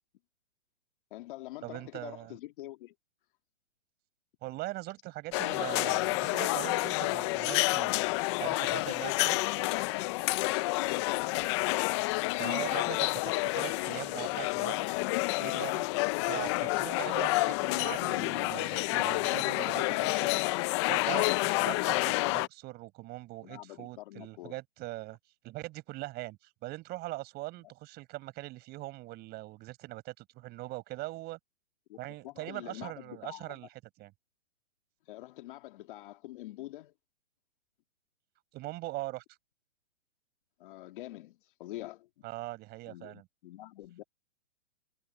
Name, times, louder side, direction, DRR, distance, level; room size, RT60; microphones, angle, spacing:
voice 1, 1.1-2.9 10.8-12.1 23.4-24.6 31.9-32.0 32.2-33.6 35.1-36.9 40.6-42.3 42.9-44.0, left 16 dB, 45° left, 2.2 m, -46 dB
voice 2, 1.6-2.3 4.4-9.5 12.4-14.9 15.2-15.9 16.2-20.4 20.9-25.2 25.4-31.4 32.0-33.7 34.0-34.1 38.5-39.2 42.2-43.3, right 19 dB, 25° right, 5.8 m, -41 dB
sound 1, 5.3-22.5, left 22 dB, 25° left, 0.7 m, -29 dB
hypercardioid pair, 145°, 37 cm